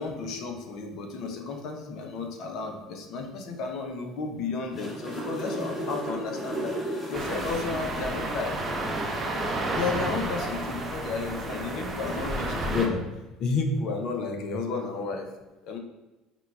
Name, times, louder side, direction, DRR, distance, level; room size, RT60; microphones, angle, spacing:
voice 1, 0.0-6.7 7.1-8.6 9.7-15.3 15.6-15.8, left 4 dB, 55° left, 3 dB, 0.5 m, -32 dB
sound 1, 4.5-8.1 11.9-12.1, right 1 dB, 10° left, 1.2 m, -34 dB
sound 2, 7.1-12.9, right 2 dB, 30° right, 0.6 m, -31 dB
5.7 x 2.2 x 2.3 m, 1.1 s
figure-of-eight pair, 60°, 0 cm